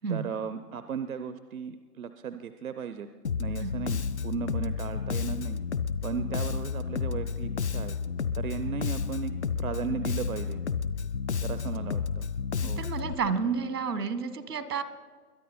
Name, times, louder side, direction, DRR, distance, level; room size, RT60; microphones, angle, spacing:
voice 1, 0.1-3.1 3.4-5.6 6.0-7.9 8.3-10.6 11.4-12.3 12.6-12.9, right 7 dB, 60° right, 10 dB, 0.7 m, -36 dB
Bass guitar, 3.2-13.1, left 6 dB, 50° left, 0.5 m, -31 dB
voice 2, 12.6-14.8, right 5 dB, 80° right, 12 dB, 1.5 m, -30 dB
22.0 x 10.5 x 4.3 m, 1.5 s
hypercardioid pair, 165°, 46 cm